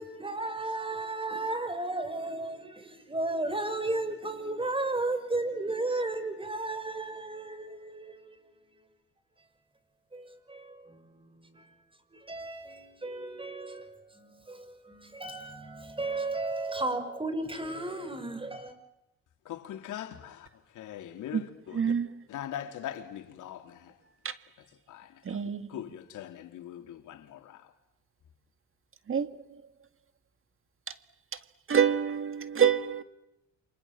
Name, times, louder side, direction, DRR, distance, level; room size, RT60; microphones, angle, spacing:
voice 1, 0.0-8.4 10.1-11.7 12.1-18.7, right 2 dB, 15° right, 6.0 m, -34 dB
voice 2, 19.5-20.4 20.8-21.9 22.3-23.6 24.9-25.0 25.7-27.4, left 11 dB, 85° left, 3.3 m, -40 dB
voice 3, 21.7-22.1 25.3-25.6 29.1-29.3 31.7-33.0, right 7 dB, 45° right, 2.0 m, -26 dB
29.5 x 25.5 x 7.5 m
cardioid pair, 90°, 30 cm